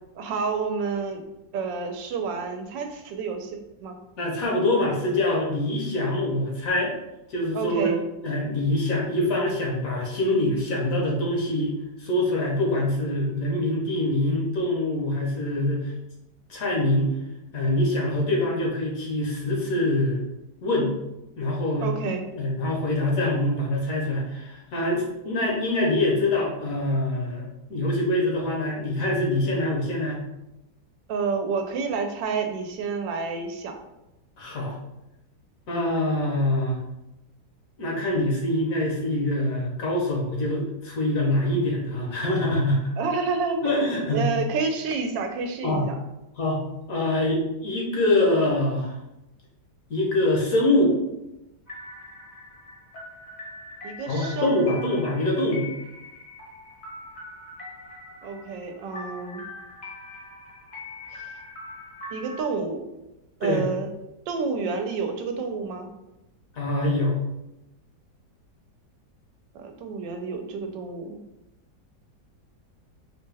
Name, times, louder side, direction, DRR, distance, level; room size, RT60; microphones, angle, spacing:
voice 1, 0.2-1.2 1.5-4.0 7.5-8.0 21.8-22.3 31.1-33.8 43.0-43.7 44.1-46.0 53.8-54.8 58.2-59.4 61.1-61.3 62.1-62.8 63.4-63.9 64.3-65.9 69.5-71.2, right 5 dB, 85° right, 5 dB, 1.3 m, -29 dB
voice 2, 4.2-6.9 7.3-8.0 8.2-11.7 12.0-15.9 16.5-17.1 17.5-20.2 20.6-20.9 21.4-21.9 22.3-30.2 34.4-34.7 35.7-36.8 37.8-42.9 43.6-44.3 45.6-45.9 46.4-46.6 46.9-48.9 49.9-50.9 54.1-55.6 63.4-63.7 66.5-67.2, left 1 dB, 60° left, -2 dB, 1.1 m, -24 dB
sound 1, 51.7-62.4, left 2 dB, 35° left, 0.7 m, -42 dB
4.5 x 2.2 x 3.3 m, 0.92 s
omnidirectional pair, 1.9 m